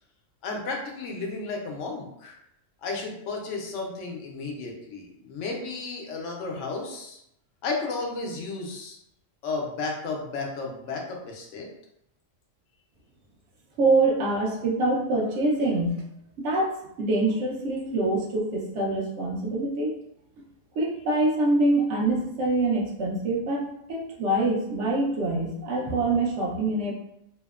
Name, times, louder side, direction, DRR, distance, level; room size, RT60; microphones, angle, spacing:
voice 1, 0.4-2.4 2.8-7.2 7.6-9.0 9.4-11.7, left 3 dB, 80° left, 0 dB, 0.9 m, -33 dB
voice 2, 13.8-16.0 16.4-16.7 17.0-19.9 20.8-26.9, right 2 dB, 75° right, -2 dB, 0.9 m, -25 dB
2.8 x 2.0 x 2.3 m, 0.77 s
omnidirectional pair, 1.3 m